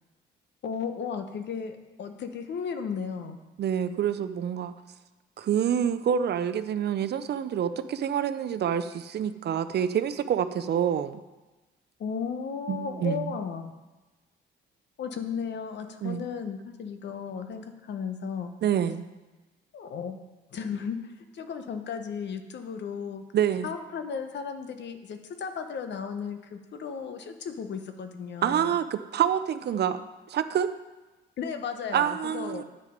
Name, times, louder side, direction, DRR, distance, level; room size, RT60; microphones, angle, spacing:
voice 1, 0.6-3.4 12.0-13.7 15.0-18.5 19.7-20.2 20.5-21.0 21.3-23.2 23.6-28.7 31.4-32.6, left 6 dB, 65° left, 7 dB, 1.0 m, -35 dB
voice 2, 3.6-4.7 5.4-11.2 12.7-13.4 16.0-16.3 18.6-19.0 23.3-23.7 28.4-30.0 30.3-30.7 31.9-32.6, right 9 dB, 55° right, 11 dB, 0.6 m, -27 dB
9.3 x 6.4 x 5.1 m, 1.1 s
cardioid pair, 90°, 20 cm